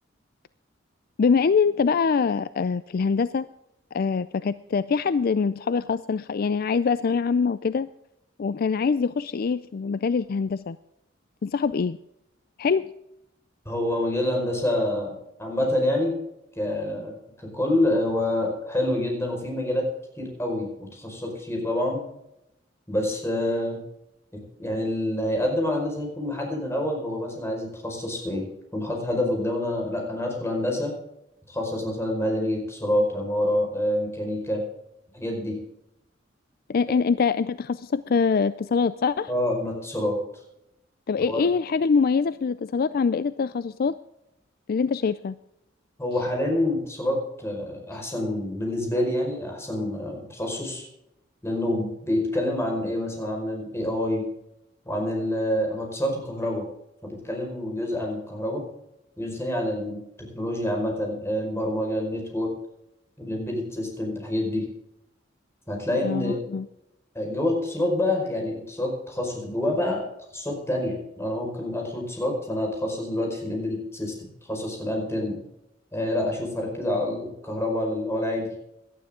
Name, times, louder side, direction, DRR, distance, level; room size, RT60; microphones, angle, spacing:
voice 1, 1.2-3.5 3.9-7.9 8.4-10.8 11.4-12.0 12.6-12.9 36.7-39.3 41.1-44.0 44.7-45.4 47.9-48.0 66.0-66.7, left 5 dB, 50° left, 15 dB, 0.4 m, -24 dB
voice 2, 13.6-16.2 16.5-17.1 17.5-19.9 20.2-22.0 22.9-23.8 24.6-28.5 28.7-30.9 31.5-34.6 35.1-35.6 39.3-40.2 41.3-41.5 46.0-50.9 51.4-54.2 54.8-56.6 57.0-58.6 59.2-60.0 60.3-62.5 63.2-64.7 65.7-66.4 67.1-70.0 70.3-75.4 75.9-78.5, left 1 dB, 15° left, 0 dB, 5.0 m, -27 dB
18.0 x 12.0 x 3.7 m, 0.84 s
head